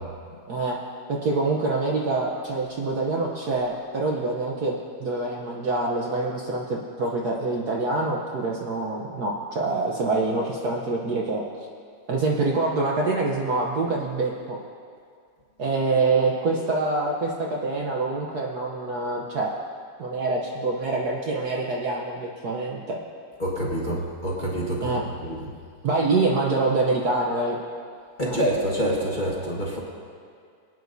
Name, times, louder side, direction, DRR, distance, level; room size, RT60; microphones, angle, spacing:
voice 1, 0.5-0.8 1.1-11.4 12.1-14.6 15.6-19.5 20.0-23.0 24.8-25.0 25.8-27.6 28.3-28.4, right 3 dB, 60° right, -1 dB, 1.2 m, -25 dB
voice 2, 23.4-24.8 25.2-25.4 28.2-29.8, equal, 25° left, -4 dB, 1.3 m, -26 dB
23.0 x 9.3 x 2.7 m, 2.2 s
omnidirectional pair, 2.3 m